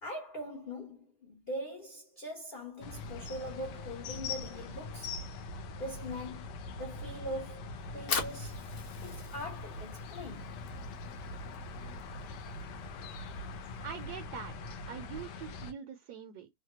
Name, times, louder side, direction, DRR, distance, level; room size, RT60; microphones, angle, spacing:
voice 1, 0.0-5.2 5.8-7.6 7.9-8.7 9.0-10.5, equal, 70° left, 0.5 m, -42 dB
sound 1, 2.8-15.7, left 3 dB, 90° left, 1.3 m, -42 dB
Fire, 7.8-14.0, left 5 dB, 50° left, 1.0 m, -42 dB
voice 2, 13.8-14.5 14.9-16.5, right 7 dB, 75° right, 1.1 m, -43 dB
3.1 x 2.2 x 2.8 m
omnidirectional pair, 1.8 m